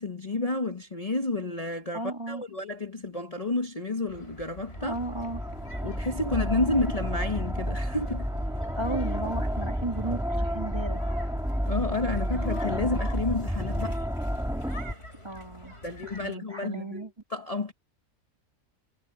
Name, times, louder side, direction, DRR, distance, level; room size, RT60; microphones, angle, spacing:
voice 1, 0.0-5.0 5.8-8.3 11.7-14.0 15.8-17.7, left 2 dB, 30° left, 1.4 m, -30 dB
voice 2, 1.9-2.4 4.8-5.4 8.8-11.0 15.2-15.8 16.0-17.1, right 2 dB, 20° right, 2.7 m, -34 dB
sound 1, 4.1-16.4, left 1 dB, 50° left, 7.9 m, -47 dB
sound 2, 4.6-14.9, equal, ahead, 2.8 m, -30 dB
omnidirectional pair, 1.4 m